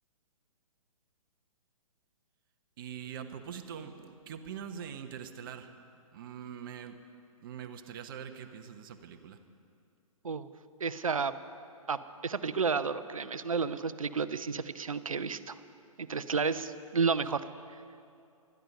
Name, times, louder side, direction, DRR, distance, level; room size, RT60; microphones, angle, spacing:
voice 1, 2.8-5.7 6.1-7.0 7.4-9.4, right 8 dB, 40° right, 7 dB, 1.1 m, -43 dB
voice 2, 10.8-11.3 11.9-15.6 16.0-17.4, right 5 dB, 70° right, 13 dB, 0.7 m, -31 dB
20.0 x 13.0 x 5.4 m, 2.5 s
figure-of-eight pair, 120°, 18 cm